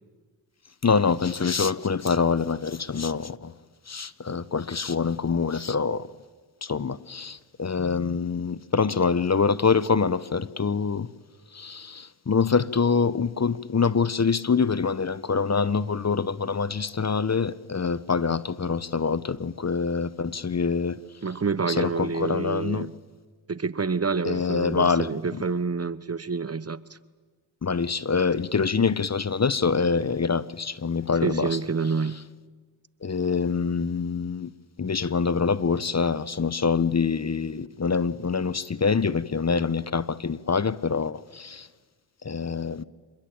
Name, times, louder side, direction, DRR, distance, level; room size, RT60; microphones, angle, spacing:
voice 1, 0.8-3.5 3.9-6.1 6.6-11.1 11.5-21.0 21.7-22.9 24.2-25.4 27.6-31.6 33.0-34.5 34.8-41.7 42.2-42.8, left 5 dB, 35° left, 1.1 m, -25 dB
voice 2, 21.2-22.9 23.5-26.8 31.2-32.2, right 5 dB, 30° right, 1.1 m, -28 dB
27.0 x 21.0 x 8.9 m
supercardioid pair, 45°, 48 cm